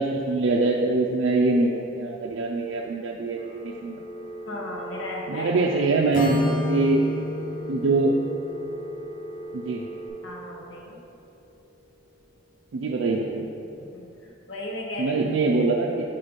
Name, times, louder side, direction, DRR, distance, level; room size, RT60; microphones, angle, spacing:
voice 1, 0.0-4.0 5.3-7.0 7.7-8.2 9.5-9.8 12.7-13.5 15.0-16.0, right 3 dB, 85° right, -1 dB, 0.4 m, -23 dB
Telephone, 3.4-10.1, right 1 dB, 45° right, 0.9 m, -39 dB
voice 2, 4.4-5.5 10.2-11.0 13.9-15.2, left 1 dB, 80° left, -2 dB, 0.9 m, -35 dB
Acoustic guitar / Strum, 6.1-10.1, left 1 dB, 45° left, 0.7 m, -32 dB
5.1 x 3.7 x 5.6 m, 2.7 s
head